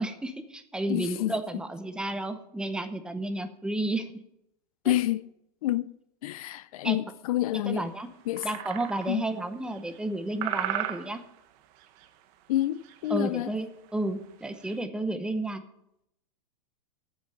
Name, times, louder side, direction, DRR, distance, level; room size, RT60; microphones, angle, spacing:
voice 1, 0.0-4.1 4.8-4.9 6.8-7.0 7.6-8.1 8.4-11.2 13.1-15.6, right 2 dB, 5° right, 0.8 m, -32 dB
voice 2, 0.9-1.3 4.8-5.2 5.6-5.9 6.2-7.8 8.3-8.5 9.1-9.3 12.5-13.5, left 15 dB, 60° left, 0.5 m, -28 dB
sound 1, 7.8-7.9 8.4-9.3 9.7-10.2 10.4-11.4 11.8-12.1 12.6-13.2 13.5-13.6 13.9-14.0 14.4-14.8, right 12 dB, 40° right, 1.1 m, -35 dB
8.8 x 8.7 x 8.9 m
supercardioid pair, 150°, 21 cm